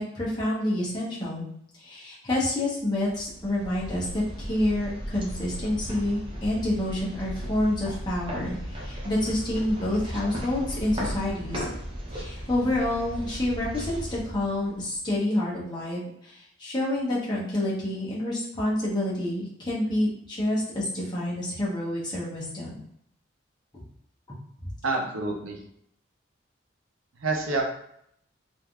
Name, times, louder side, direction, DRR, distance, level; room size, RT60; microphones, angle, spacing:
voice 1, 0.0-1.5 1.8-11.7 12.1-22.8 23.7-23.8 24.3-24.4 24.6-24.7, left 1 dB, 20° left, -7 dB, 0.8 m, -28 dB
sound 1, 3.0-15.1, equal, 25° right, 0.6 m, -36 dB
voice 2, 24.8-25.6 27.2-27.6, right 3 dB, 85° right, 0 dB, 0.7 m, -27 dB
3.3 x 2.6 x 2.2 m, 0.71 s
head